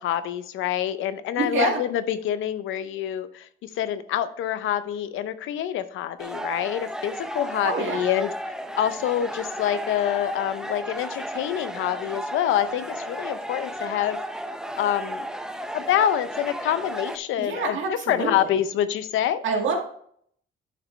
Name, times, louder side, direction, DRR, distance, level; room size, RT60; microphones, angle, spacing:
voice 1, 0.0-8.3 8.8-14.2 14.8-15.3 15.7-19.4, left 11 dB, 85° left, 13 dB, 0.7 m, -26 dB
voice 2, 1.4-1.8 7.6-8.1 17.4-18.6 19.4-19.8, right 4 dB, 75° right, 2 dB, 2.0 m, -27 dB
sound 1, 6.2-17.2, equal, 5° right, 0.7 m, -34 dB
10.0 x 6.1 x 3.3 m, 0.65 s
cardioid pair, 90°, 20 cm